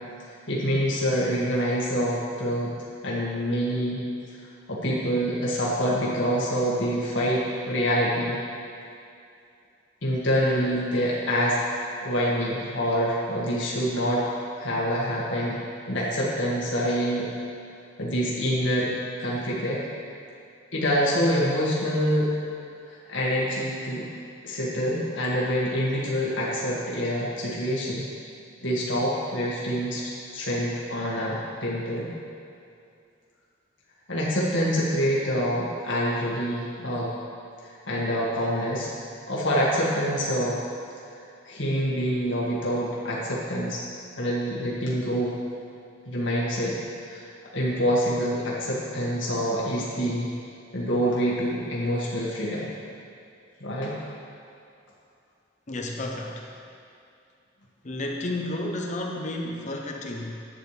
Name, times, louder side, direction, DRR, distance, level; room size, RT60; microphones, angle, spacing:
voice 1, 0.5-2.7 3.0-4.0 4.3-4.4 4.7-8.4 10.0-11.6 12.0-14.3 14.6-15.6 15.8-17.3 18.0-18.9 19.2-19.9 20.7-22.3 22.9-24.1 24.4-28.0 28.6-32.1 34.1-37.1 37.6-38.9 39.3-40.6 41.4-43.8 44.2-45.3 46.1-46.8 47.1-47.3 47.5-50.3 50.7-52.7 53.6-53.9, equal, 90° left, -6 dB, 1.8 m, -26 dB
voice 2, 55.7-56.5 57.8-60.5, left 1 dB, 40° left, 1 dB, 0.8 m, -32 dB
12.0 x 9.0 x 3.4 m, 2.5 s
head